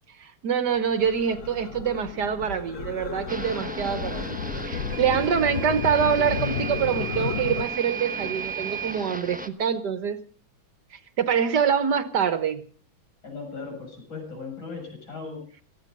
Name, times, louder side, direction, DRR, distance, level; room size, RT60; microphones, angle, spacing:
voice 1, 0.2-10.2 10.9-12.6, right 7 dB, 60° right, 12 dB, 1.5 m, -25 dB
sound 1, 0.7-7.6, left 7 dB, 50° left, 1.0 m, -33 dB
sound 2, 3.3-9.5, right 1 dB, 10° right, 0.5 m, -37 dB
Microwave oven / Alarm, 4.9-9.0, right 13 dB, 90° right, 1.8 m, -35 dB
voice 2, 13.2-15.4, left 4 dB, 70° left, 1 dB, 8.0 m, -37 dB
18.5 x 14.5 x 5.3 m, 0.43 s
omnidirectional pair, 2.2 m